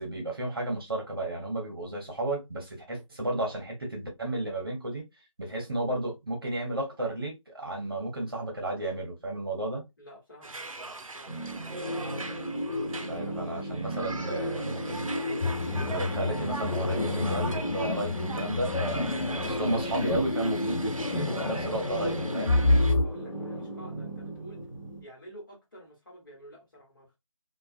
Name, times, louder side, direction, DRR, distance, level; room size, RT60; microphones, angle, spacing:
voice 1, 0.0-5.0 5.4-9.8 12.8-15.2 15.9-19.1 19.4-22.6, right 1 dB, 45° right, 0.9 m, -33 dB
voice 2, 10.0-11.4 22.8-24.7 25.0-27.2, equal, 40° left, 1.2 m, -50 dB
sound 1, 10.4-22.9, right 3 dB, 85° right, 0.5 m, -41 dB
sound 2, 11.2-25.0, equal, ahead, 0.6 m, -36 dB
sound 3, 15.4-23.1, left 2 dB, 80° left, 0.4 m, -29 dB
2.3 x 2.3 x 2.4 m
figure-of-eight pair, 165°, 17 cm